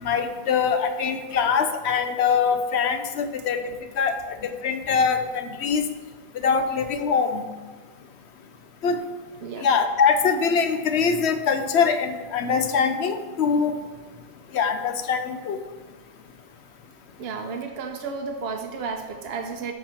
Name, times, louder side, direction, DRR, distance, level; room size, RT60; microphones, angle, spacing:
voice 1, 0.0-3.6 4.0-4.4 4.6-5.8 6.3-7.4 8.8-9.0 9.6-13.7 14.5-15.6, left 6 dB, 80° left, 8 dB, 1.0 m, -23 dB
voice 2, 17.2-19.7, right 5 dB, 70° right, 4 dB, 0.9 m, -32 dB
13.0 x 4.7 x 4.3 m, 1.3 s
omnidirectional pair, 1.1 m